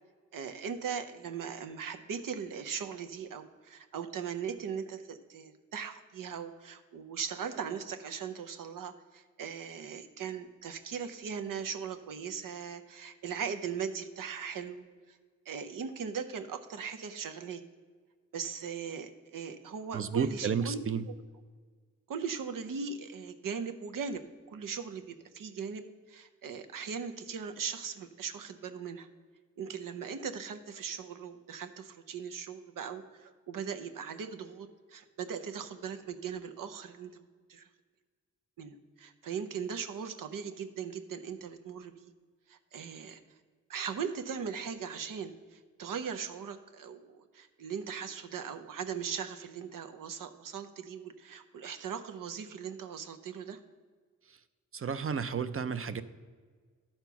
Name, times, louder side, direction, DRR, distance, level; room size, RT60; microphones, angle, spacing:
voice 1, 0.3-15.2 15.5-17.6 18.3-20.8 21.1-21.2 22.1-24.2 24.5-29.1 29.6-37.7 38.6-42.1 42.5-43.2 43.7-53.6, right 6 dB, 75° right, 8 dB, 0.7 m, -39 dB
voice 2, 19.9-21.0 54.7-56.0, right 6 dB, 40° right, 12 dB, 0.6 m, -31 dB
12.0 x 4.4 x 5.7 m, 1.6 s
cardioid pair, 55°, 32 cm